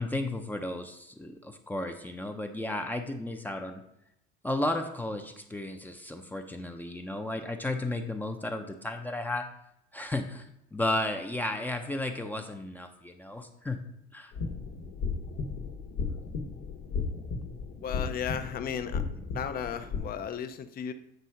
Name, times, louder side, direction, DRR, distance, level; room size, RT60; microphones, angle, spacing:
voice 1, 0.0-3.8 4.4-9.5 9.9-13.8 14.1-14.3, left 1 dB, 10° left, 5 dB, 0.6 m, -33 dB
sound 1, 14.3-20.0, left 4 dB, 80° left, 1.2 m, -35 dB
voice 2, 17.8-19.0 19.3-20.9, left 8 dB, 45° left, 10 dB, 0.7 m, -35 dB
7.9 x 3.6 x 5.7 m, 0.79 s
cardioid pair, 130°, 21 cm